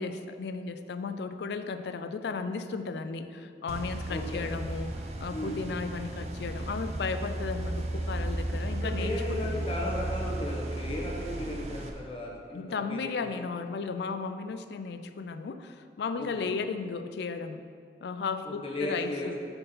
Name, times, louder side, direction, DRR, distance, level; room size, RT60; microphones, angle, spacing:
voice 1, 0.0-9.7 12.5-17.6 18.0-19.4, left 4 dB, 70° left, 9 dB, 0.4 m, -35 dB
sound 1, 3.7-11.9, right 1 dB, 35° right, 0.5 m, -34 dB
voice 2, 4.1-4.4 5.3-5.5 8.8-13.4 16.2-16.5 18.5-19.4, left 1 dB, 30° left, -3 dB, 1.0 m, -35 dB
6.6 x 4.5 x 5.5 m, 2.2 s
head